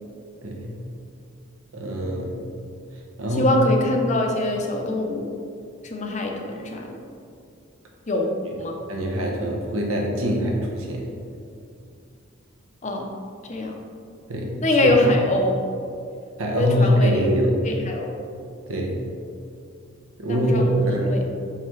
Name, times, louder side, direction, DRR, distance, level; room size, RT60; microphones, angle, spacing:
voice 1, 0.4-0.8 1.7-2.4 3.2-3.5 8.9-11.1 14.3-14.5 14.8-14.9 16.4-17.7 18.7-19.1 20.2-21.2, equal, 80° right, 0 dB, 1.0 m, -23 dB
voice 2, 3.3-5.3 5.8-7.0 8.1-8.3 8.6-8.8 12.8-13.1 13.4-13.7 14.6-15.6 16.5-17.2 17.6-18.2 20.3-21.2, left 1 dB, 35° left, 1 dB, 0.6 m, -23 dB
5.6 x 5.6 x 3.1 m, 2.5 s
head